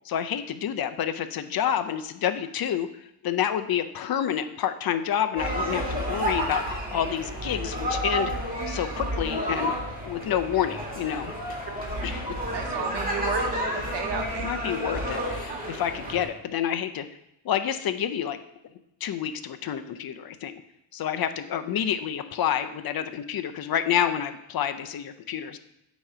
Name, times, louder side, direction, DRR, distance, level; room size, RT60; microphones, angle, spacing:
voice 1, 0.0-2.9 3.2-8.3 8.7-9.7 10.0-11.4 12.0-12.3 14.4-17.0 17.4-18.4 19.0-20.5 20.9-25.6, left 9 dB, 50° left, 9 dB, 0.6 m, -28 dB
sound 1, 5.4-16.2, equal, 20° right, 2.4 m, -30 dB
voice 2, 12.5-14.4 15.5-15.6, right 6 dB, 60° right, 5 dB, 1.1 m, -33 dB
8.6 x 3.1 x 5.5 m, 0.83 s
cardioid pair, 115°, 47 cm